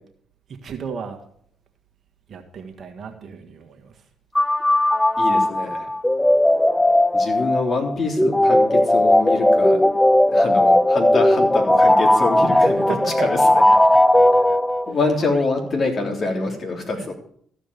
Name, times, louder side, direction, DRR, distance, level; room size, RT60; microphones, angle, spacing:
voice 1, 0.5-1.2 2.3-4.0 5.2-5.9 12.5-13.3 14.9-15.1 16.9-17.1, right 6 dB, 55° right, 1.7 m, -34 dB
sound 1, 4.3-15.1, left 1 dB, 10° left, 0.4 m, -17 dB
voice 2, 5.2-5.9 7.1-9.9 10.3-13.6 14.3-14.6 14.9-17.1, left 3 dB, 45° left, 3.4 m, -25 dB
14.5 x 5.1 x 6.8 m
supercardioid pair, 60°, 0 cm